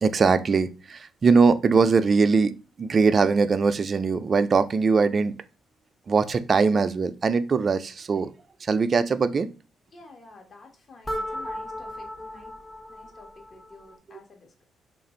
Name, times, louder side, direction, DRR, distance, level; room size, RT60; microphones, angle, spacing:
voice 1, 0.0-5.3 6.1-8.3 8.6-9.5, right 4 dB, 40° right, 0.4 m, -21 dB
voice 2, 9.9-12.5 12.9-14.7, left 3 dB, 45° left, 1.1 m, -50 dB
sound 1, 11.1-14.0, equal, 20° left, 0.7 m, -36 dB
3.2 x 2.5 x 4.2 m
cardioid pair, 90°, 0 cm